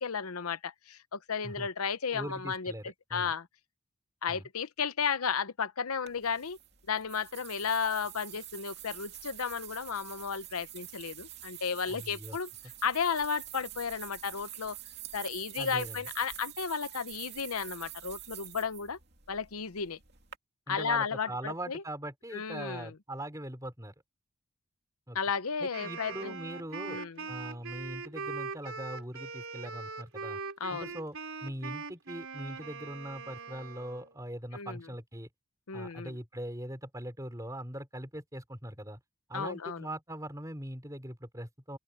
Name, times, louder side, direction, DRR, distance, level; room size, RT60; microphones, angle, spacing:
voice 1, 0.0-3.5 4.2-6.6 6.9-12.5 12.8-14.8 15.1-19.0 19.3-20.0 20.7-21.8 22.3-22.9 25.1-26.4 26.9-27.2 30.6-30.9 34.5-34.8 35.7-36.2 39.3-39.9, left 6 dB, 90° left, 0.9 m, -33 dB
voice 2, 2.1-3.3 4.3-4.4 11.9-12.4 15.6-16.0 20.7-23.9 25.1-25.2 25.6-27.0 27.3-30.4 30.7-31.2 31.4-35.3 35.7-39.0 39.3-41.8, right 1 dB, 15° right, 5.0 m, -41 dB
sound 1, 6.1-20.4, right 13 dB, 50° right, 2.7 m, -47 dB
Wind instrument woodwind instrument, 25.7-34.1, right 4 dB, 75° right, 4.0 m, -41 dB
open air
head